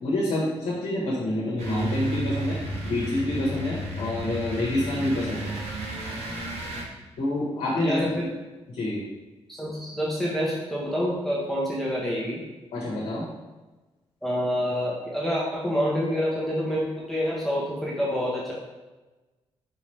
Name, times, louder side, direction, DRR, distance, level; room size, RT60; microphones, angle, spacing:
voice 1, 0.0-2.6 2.8-5.5 7.2-8.1 8.7-9.0 12.7-13.2, left 1 dB, 80° left, -5 dB, 1.1 m, -27 dB
sound 1, 1.6-6.8, right 2 dB, 80° right, 0.8 m, -32 dB
voice 2, 7.8-8.2 9.5-12.4 14.2-18.5, equal, ahead, -6 dB, 0.9 m, -27 dB
5.0 x 2.8 x 3.1 m, 1.2 s
cardioid pair, 90°, 11 cm